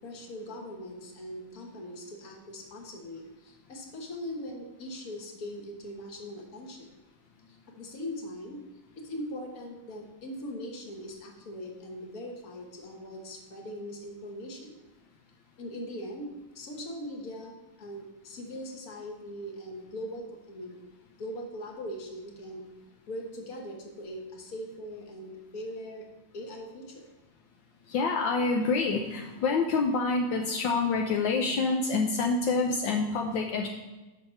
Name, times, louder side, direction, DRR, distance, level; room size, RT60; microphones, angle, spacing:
voice 1, 0.0-6.9 7.5-8.6 9.0-14.7 15.6-20.8 21.2-22.7 23.1-26.1 26.3-27.1, equal, 50° left, 1 dB, 1.7 m, -40 dB
voice 2, 27.9-33.7, left 4 dB, 75° left, 1 dB, 1.4 m, -27 dB
7.7 x 6.2 x 5.6 m, 1.1 s
omnidirectional pair, 2.1 m